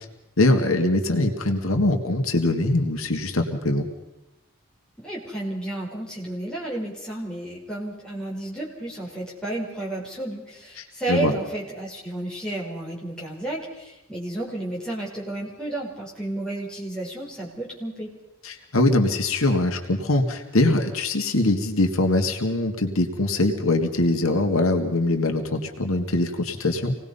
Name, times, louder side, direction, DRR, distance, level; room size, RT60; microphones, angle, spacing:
voice 1, 0.4-3.9 10.8-11.3 18.4-27.0, left 2 dB, 80° left, 4 dB, 1.9 m, -22 dB
voice 2, 5.0-18.1, right 1 dB, 5° left, -4 dB, 4.8 m, -32 dB
26.0 x 19.0 x 5.5 m, 0.95 s
head